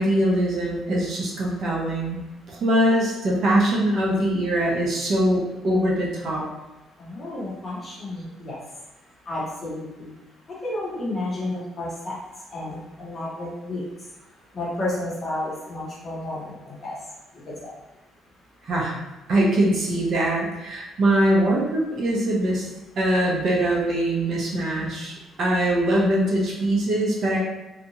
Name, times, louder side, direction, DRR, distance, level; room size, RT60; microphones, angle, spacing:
voice 1, 0.0-6.4 18.6-19.0 19.3-22.7 23.0-27.4, right 1 dB, 45° right, -3 dB, 0.6 m, -22 dB
voice 2, 7.0-8.6 9.2-10.1 10.5-12.2 12.5-13.8 14.5-17.0 17.3-17.7, left 1 dB, 25° left, -7 dB, 0.9 m, -31 dB
2.7 x 2.3 x 2.8 m, 1.0 s
cardioid pair, 165°, 0 cm